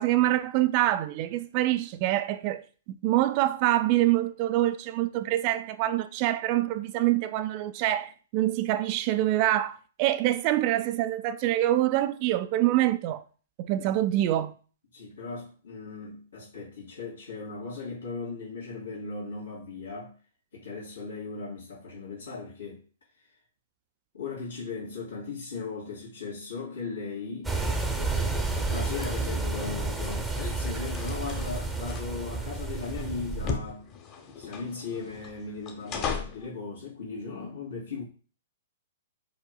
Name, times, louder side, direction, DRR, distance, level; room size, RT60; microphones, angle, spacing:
voice 1, 0.0-2.6 3.0-13.2 13.6-14.5, right 14 dB, 40° right, 0.3 m, -25 dB
voice 2, 14.9-20.1 20.5-22.8 23.2-23.3 24.1-27.5 28.7-33.9 34.4-38.0, left 4 dB, 90° left, 2.4 m, -37 dB
sound 1, 27.4-33.6, right 3 dB, 5° right, 0.7 m, -30 dB
sound 2, 28.5-36.5, left 6 dB, 35° left, 0.9 m, -39 dB
5.1 x 4.6 x 2.2 m
hypercardioid pair, 120°, 0 cm